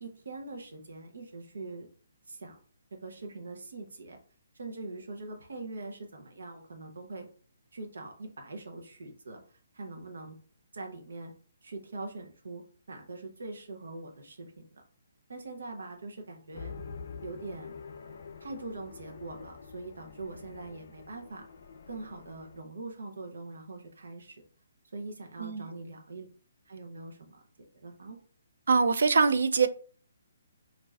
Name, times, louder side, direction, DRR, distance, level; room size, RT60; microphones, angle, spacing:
voice 1, 0.0-1.9 2.3-2.6 2.9-4.2 4.5-7.3 7.7-10.4 10.7-11.3 11.6-14.8 15.3-16.7 17.2-17.7 18.4-21.5 21.9-24.4 24.9-26.3 26.7-27.4 27.7-28.2, right 3 dB, 90° right, 3 dB, 0.7 m, -43 dB
sound 1, 16.5-22.6, left 5 dB, 55° left, 0.4 m, -46 dB
voice 2, 25.4-25.7 28.7-29.7, right 4 dB, 70° right, 11 dB, 0.3 m, -23 dB
2.4 x 2.3 x 3.2 m, 0.42 s
hypercardioid pair, 170°, 0 cm